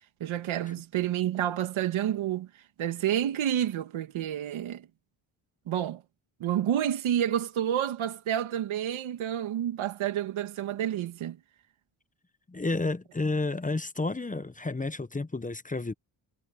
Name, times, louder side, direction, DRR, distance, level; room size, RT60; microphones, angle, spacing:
voice 1, 0.2-2.5 2.8-4.9 5.7-6.0 6.4-11.4, right 11 dB, 85° right, 2.6 m, -29 dB
voice 2, 12.5-15.9, left 3 dB, 15° left, 1.0 m, -31 dB
cardioid pair, 70°, 47 cm